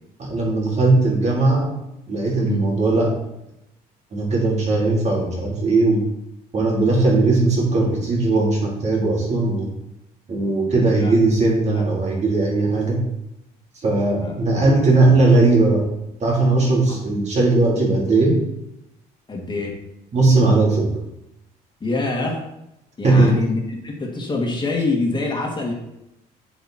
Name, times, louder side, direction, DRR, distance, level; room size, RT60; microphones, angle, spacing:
voice 1, 0.2-1.7 2.1-3.2 4.1-6.1 6.5-9.7 10.3-13.0 13.8-15.8 16.2-18.4 20.1-20.9 23.0-23.4, right 2 dB, 40° right, -3 dB, 4.0 m, -18 dB
voice 2, 10.7-11.1 11.7-11.8 14.2-14.4 19.3-19.8 21.8-22.4 23.0-25.7, left 3 dB, 25° left, 0 dB, 2.3 m, -25 dB
8.2 x 8.1 x 4.5 m, 0.86 s
cardioid pair, 110°, 17 cm